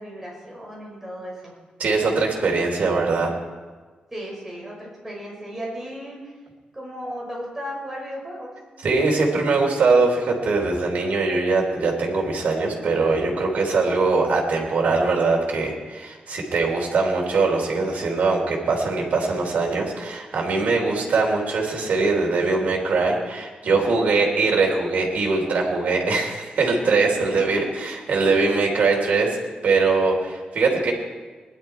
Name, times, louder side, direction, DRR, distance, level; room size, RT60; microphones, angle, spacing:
voice 1, 0.0-1.5 4.1-6.3 6.7-8.5 27.2-27.7, equal, 10° right, -4 dB, 5.7 m, -35 dB
voice 2, 1.8-3.3 8.8-29.4 29.6-30.9, right 3 dB, 65° right, -1 dB, 3.4 m, -22 dB
20.0 x 11.5 x 4.6 m, 1.4 s
wide cardioid pair, 150°, 3 cm